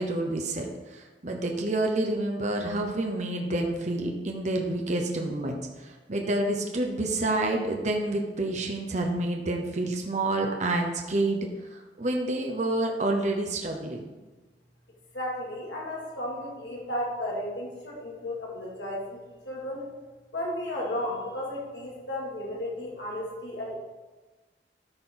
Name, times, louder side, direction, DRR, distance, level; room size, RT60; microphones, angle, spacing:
voice 1, 0.0-14.1, right 2 dB, 40° right, 2 dB, 0.8 m, -28 dB
voice 2, 15.1-19.2 19.5-19.9 20.3-23.7, left 1 dB, 80° left, -4 dB, 2.5 m, -34 dB
13.0 x 4.4 x 3.9 m, 1.2 s
head